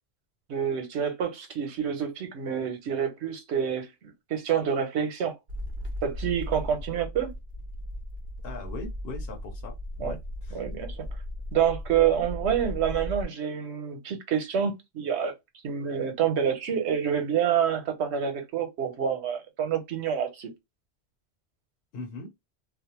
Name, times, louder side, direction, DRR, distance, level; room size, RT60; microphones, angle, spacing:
voice 1, 0.5-5.3 6.0-7.3 10.0-10.1 10.5-11.1 11.5-15.3 15.6-20.5, right 8 dB, 85° right, 1.0 m, -27 dB
sound 1, 5.5-13.3, left 1 dB, 55° right, 0.8 m, -37 dB
voice 2, 8.4-9.8 10.0-10.6 21.9-22.4, left 3 dB, 65° left, 0.9 m, -40 dB
2.5 x 2.0 x 2.8 m
omnidirectional pair, 1.1 m